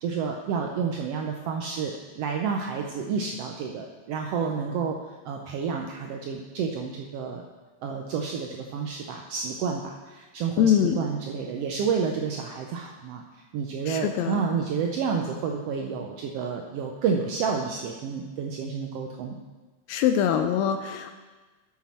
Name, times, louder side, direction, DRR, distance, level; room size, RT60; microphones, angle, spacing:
voice 1, 0.0-5.0 5.2-7.4 7.8-13.2 13.5-19.4, right 6 dB, 80° right, 2 dB, 1.4 m, -30 dB
voice 2, 10.6-11.0 13.9-14.4 19.9-21.1, left 9 dB, 80° left, 7 dB, 1.7 m, -23 dB
11.5 x 6.2 x 4.2 m, 1.3 s
omnidirectional pair, 3.4 m